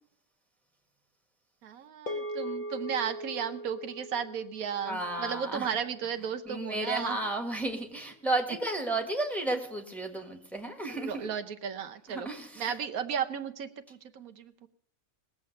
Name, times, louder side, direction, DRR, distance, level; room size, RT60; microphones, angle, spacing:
voice 1, 1.6-7.2 10.9-12.3 12.6-14.7, right 7 dB, 85° right, 8 dB, 1.3 m, -34 dB
sound 1, 2.1-6.6, equal, 40° left, 1.5 m, -40 dB
voice 2, 4.8-5.7 6.4-11.3 12.1-12.8, right 2 dB, ahead, 4 dB, 1.6 m, -33 dB
19.5 x 7.3 x 6.6 m, 0.66 s
omnidirectional pair, 1.5 m